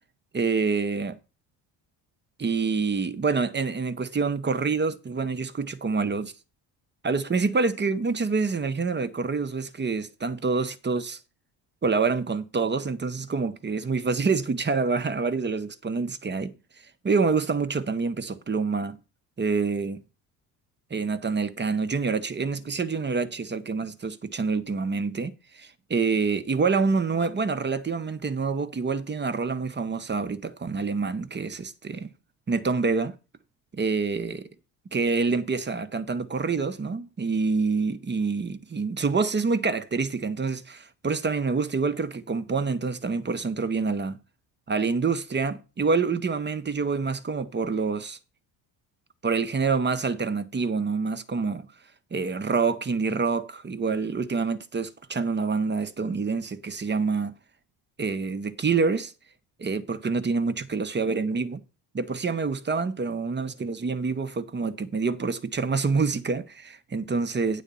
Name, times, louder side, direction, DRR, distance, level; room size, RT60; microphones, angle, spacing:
voice 1, 0.3-1.2 2.4-6.3 7.0-11.2 11.8-16.5 17.0-19.0 19.4-20.0 20.9-32.1 32.5-33.1 33.7-34.5 34.9-44.2 44.7-48.2 49.2-51.7 52.1-57.3 58.0-59.1 59.6-61.6 61.9-67.6, right 4 dB, 25° right, 0.9 m, -27 dB
9.1 x 4.1 x 6.8 m
supercardioid pair, 70°, 46 cm